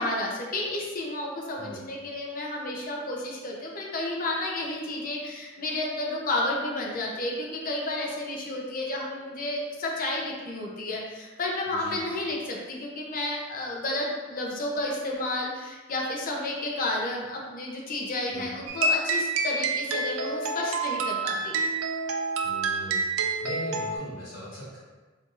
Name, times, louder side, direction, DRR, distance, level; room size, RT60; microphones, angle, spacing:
voice 1, 0.0-21.6, left 1 dB, 45° left, -1 dB, 0.6 m, -31 dB
sound 1, 18.7-24.0, right 3 dB, 85° right, 0.4 m, -28 dB
voice 2, 22.4-23.1 23.4-24.8, equal, 70° left, -11 dB, 1.4 m, -39 dB
4.3 x 2.7 x 2.5 m, 1.3 s
head